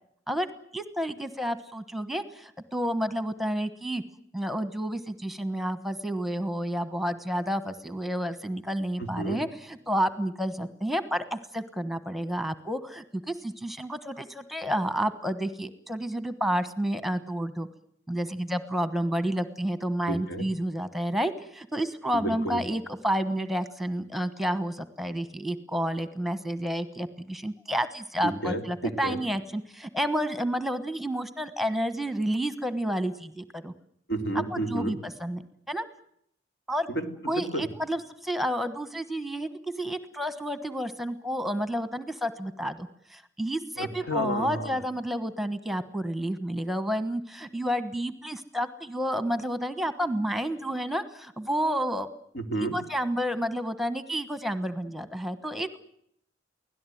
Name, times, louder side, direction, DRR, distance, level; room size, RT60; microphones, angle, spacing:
voice 1, 0.7-4.0 4.3-17.7 18.1-33.7 34.5-35.4 35.7-35.8 36.7-36.9 37.3-39.5 39.8-52.1 52.7-55.8, equal, ahead, 11 dB, 1.2 m, -30 dB
voice 2, 9.0-9.4 20.1-20.5 22.1-22.6 28.2-29.2 34.1-35.0 36.9-37.7 43.8-44.8 52.3-52.8, right 1 dB, 80° left, 6 dB, 3.3 m, -31 dB
24.0 x 17.0 x 9.3 m, 0.71 s
head